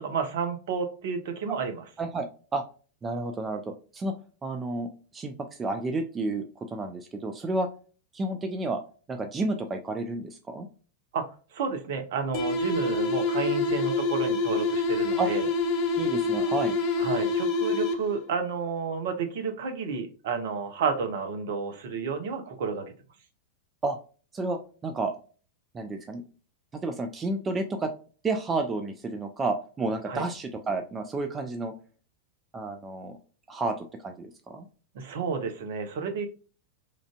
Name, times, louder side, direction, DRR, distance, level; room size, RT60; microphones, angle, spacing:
voice 1, 0.0-1.8 11.1-15.5 17.0-22.9 30.1-30.2 34.9-36.3, right 5 dB, 55° right, 6 dB, 0.7 m, -31 dB
voice 2, 2.0-2.6 3.0-4.1 4.4-7.7 8.1-8.8 9.1-10.7 15.2-15.3 16.0-16.8 23.8-24.0 24.3-25.1 25.7-26.2 26.8-27.9 28.2-31.7 32.5-33.2 33.5-34.7, right 2 dB, 20° right, 5 dB, 0.4 m, -31 dB
sound 1, 12.3-18.3, left 3 dB, 40° left, 0.6 m, -26 dB
3.2 x 2.5 x 2.3 m, 0.37 s
figure-of-eight pair, 90°, 0 cm